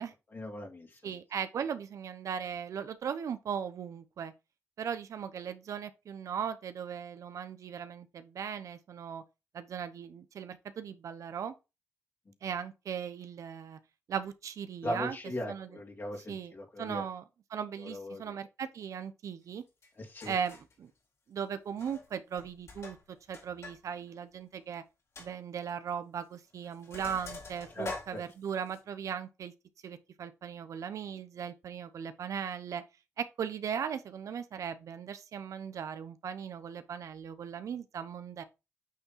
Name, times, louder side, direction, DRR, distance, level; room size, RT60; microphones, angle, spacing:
voice 1, 0.3-1.1 14.8-17.0 17.8-18.4 20.0-20.3 27.7-28.2, left 1 dB, 45° left, 2.8 m, -39 dB
voice 2, 1.0-4.3 4.8-9.2 9.5-11.5 12.4-13.8 14.1-15.2 15.5-15.7 16.3-16.5 16.8-17.2 17.5-19.6 20.2-20.9 21.3-23.0 23.3-24.8 25.2-29.5 29.8-32.8 33.2-38.4, right 7 dB, 80° right, 0.8 m, -38 dB
Sink (filling or washing), 19.8-19.9 20.2-20.7 21.7-22.1 22.4-23.8 24.1-24.2 24.6-24.7 25.2-25.3 26.2-26.4 26.6-28.8, left 3 dB, 60° left, 4.6 m, -45 dB
8.6 x 3.5 x 4.4 m
cardioid pair, 70°, 5 cm